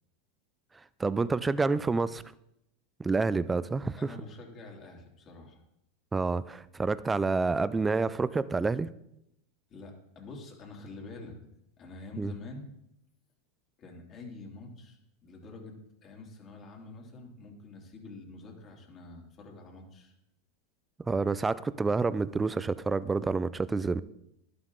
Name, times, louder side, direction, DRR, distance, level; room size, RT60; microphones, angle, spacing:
voice 1, 1.0-2.2 3.0-4.1 6.1-8.9 12.2-12.3 21.1-24.0, right 4 dB, 10° right, 16 dB, 0.4 m, -28 dB
voice 2, 4.0-5.6 9.7-11.3 11.8-12.7 13.8-15.7 16.0-20.1, left 2 dB, 35° left, 1 dB, 2.6 m, -46 dB
11.5 x 11.0 x 3.8 m, 0.80 s
supercardioid pair, 135°, 0 cm